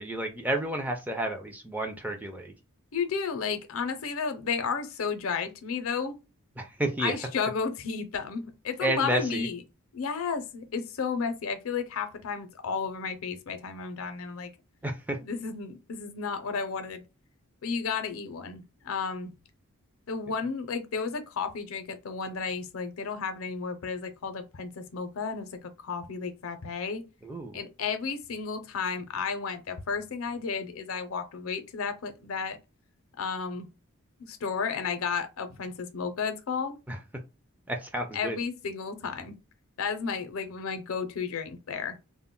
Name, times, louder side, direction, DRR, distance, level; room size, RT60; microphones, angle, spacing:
voice 1, 0.0-2.5 6.6-7.2 8.8-9.5 14.8-15.2 27.2-27.5 36.9-37.0 37.7-38.4, right 1 dB, 10° right, 0.3 m, -31 dB
voice 2, 2.9-6.1 7.0-9.6 9.9-14.5 15.2-17.0 17.6-19.3 20.1-27.0 27.5-32.6 33.2-33.7 34.2-36.8 38.1-39.4 39.8-42.0, left 5 dB, 70° left, 0.5 m, -33 dB
2.1 x 2.0 x 3.7 m
head